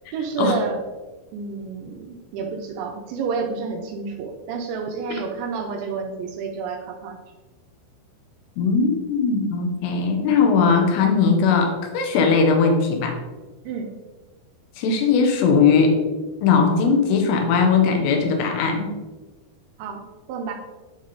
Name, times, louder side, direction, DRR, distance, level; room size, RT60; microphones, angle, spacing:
voice 1, 0.1-0.8 1.3-7.2 13.7-13.9 19.8-20.5, right 5 dB, 80° right, 2 dB, 2.8 m, -29 dB
voice 2, 8.6-13.2 14.8-16.0 16.4-19.0, left 5 dB, 75° left, 3 dB, 2.9 m, -19 dB
10.0 x 3.5 x 4.0 m, 1.2 s
omnidirectional pair, 5.4 m